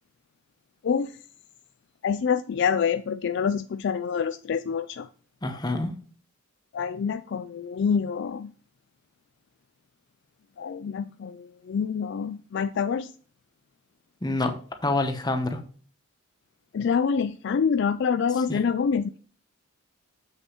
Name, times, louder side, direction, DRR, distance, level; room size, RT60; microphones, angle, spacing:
voice 1, 2.0-5.1 6.7-8.5 10.6-13.1 16.7-19.2, left 6 dB, 50° left, 11 dB, 0.3 m, -26 dB
voice 2, 5.4-5.9 14.2-14.5 14.8-15.6 18.5-18.6, left 2 dB, 20° left, 7 dB, 0.9 m, -26 dB
7.7 x 6.5 x 3.0 m, 0.42 s
head